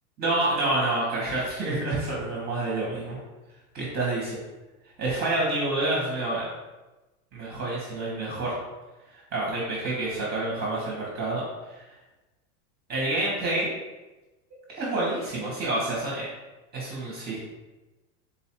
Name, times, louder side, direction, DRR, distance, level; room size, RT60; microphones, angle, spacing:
voice 1, 0.2-3.2 3.7-4.4 5.0-6.4 7.3-8.6 9.3-11.4 11.7-11.8 12.9-13.7 14.7-16.3 16.7-17.4, right 2 dB, 20° right, -4 dB, 0.8 m, -28 dB
3.8 x 2.3 x 4.3 m, 1.1 s
supercardioid pair, 165°, 45 cm